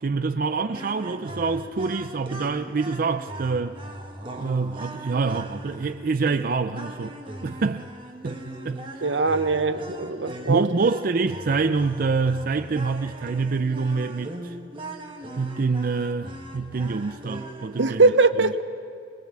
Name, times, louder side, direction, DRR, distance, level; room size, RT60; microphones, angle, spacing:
voice 1, 0.0-3.8 4.4-7.2 7.4-7.9 8.2-9.0 10.5-14.6 15.4-18.1 18.4-18.5, right 4 dB, 50° right, 0.5 m, -26 dB
sound 1, 0.7-17.9, right 1 dB, 30° right, 1.6 m, -39 dB
voice 2, 9.0-10.7 17.8-18.6, right 3 dB, 80° right, 0.9 m, -21 dB
24.0 x 19.5 x 7.4 m
head